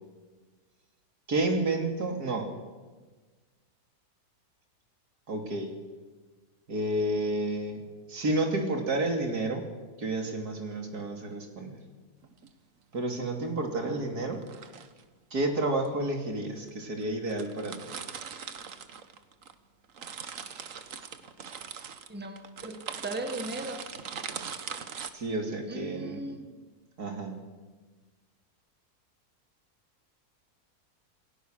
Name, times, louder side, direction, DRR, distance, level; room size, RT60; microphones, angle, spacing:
voice 1, 1.3-2.5 5.3-5.8 6.7-7.8 8.1-9.7 10.0-11.8 12.9-14.4 15.3-17.8 25.1-26.2 27.0-27.4, right 2 dB, 75° right, 3 dB, 3.3 m, -30 dB
sound 1, 12.2-12.5 14.3-15.0 15.9-16.0 16.7-16.8 17.0-17.1 17.3-19.6 19.8-25.1, right 6 dB, 55° right, 1.5 m, -41 dB
voice 2, 22.1-22.7 23.0-23.8 25.7-26.5, right 2 dB, 5° right, 6 dB, 1.6 m, -37 dB
27.5 x 17.0 x 6.4 m, 1.3 s
omnidirectional pair, 1.7 m